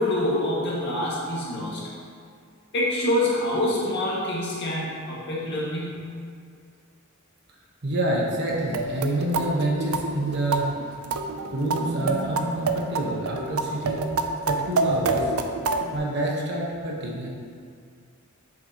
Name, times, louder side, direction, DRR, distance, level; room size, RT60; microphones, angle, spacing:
voice 1, 0.0-1.8 2.7-6.1, left 1 dB, 55° left, -6 dB, 1.8 m, -26 dB
voice 2, 7.8-10.7 11.5-14.1 14.5-15.3 15.9-17.3, right 1 dB, 55° right, -2 dB, 1.1 m, -27 dB
sound 1, 8.5-16.0, right 3 dB, 75° right, 0.5 m, -27 dB
7.9 x 6.7 x 2.9 m, 2.2 s
head